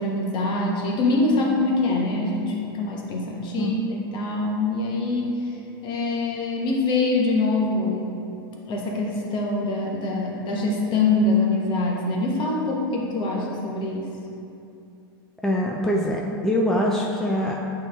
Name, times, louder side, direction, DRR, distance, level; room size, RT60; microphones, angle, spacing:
voice 1, 0.0-8.1 8.7-14.1, left 2 dB, 40° left, -1 dB, 1.2 m, -24 dB
voice 2, 15.4-17.6, equal, 5° left, -2 dB, 0.5 m, -23 dB
8.3 x 3.3 x 3.5 m, 2.6 s
hypercardioid pair, 95°, 12 cm